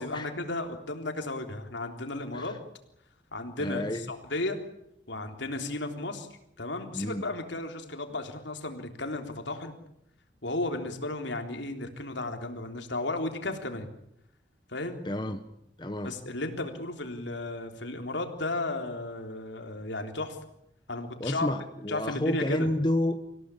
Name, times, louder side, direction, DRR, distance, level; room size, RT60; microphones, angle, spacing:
voice 1, 0.0-2.6 3.3-4.6 5.1-6.3 6.6-9.7 10.4-13.9 14.7-15.0 16.0-20.4 20.9-21.5 21.9-22.7, left 2 dB, 75° left, 5 dB, 3.6 m, -34 dB
voice 2, 3.6-4.1 6.9-7.2 15.0-15.4 15.8-16.1 21.2-23.2, left 1 dB, 25° left, 8 dB, 1.2 m, -30 dB
26.5 x 17.0 x 10.0 m, 0.80 s
head